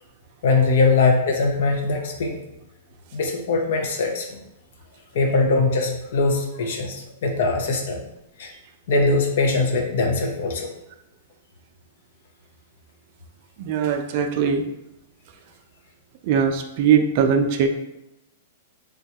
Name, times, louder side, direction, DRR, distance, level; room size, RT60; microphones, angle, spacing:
voice 1, 0.4-2.4 3.1-4.4 5.1-8.0 8.4-8.5 8.9-10.7, left 3 dB, 70° left, 2 dB, 0.5 m, -21 dB
voice 2, 13.6-14.7 16.2-17.7, right 7 dB, 50° right, 6 dB, 0.4 m, -20 dB
3.2 x 2.2 x 2.8 m, 0.90 s
hypercardioid pair, 125°, 0 cm